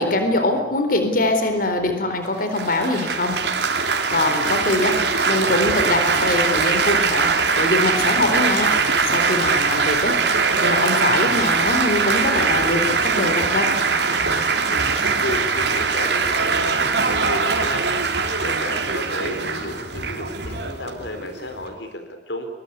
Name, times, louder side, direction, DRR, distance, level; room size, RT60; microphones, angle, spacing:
voice 1, 0.0-3.4 4.1-5.0 5.3-8.7 9.0-10.2 10.6-13.7, left 2 dB, 50° left, 7 dB, 3.9 m, -22 dB
Laughter / Applause / Chatter, 2.6-21.7, right 4 dB, 70° right, 3.3 m, -21 dB
voice 2, 14.7-17.8 18.4-22.5, left 1 dB, 80° left, 7 dB, 4.0 m, -32 dB
23.5 x 23.0 x 9.6 m, 0.91 s
head